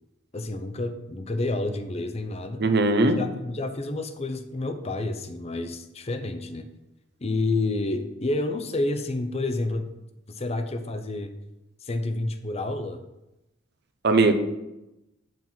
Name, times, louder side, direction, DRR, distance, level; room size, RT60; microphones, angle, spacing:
voice 1, 0.3-2.6 3.0-6.7 7.2-9.9 10.3-11.3 11.8-13.0, left 2 dB, 30° left, 8 dB, 0.7 m, -29 dB
voice 2, 2.6-3.2 14.0-14.3, right 3 dB, 55° right, 8 dB, 0.8 m, -19 dB
9.0 x 5.9 x 4.4 m, 0.93 s
head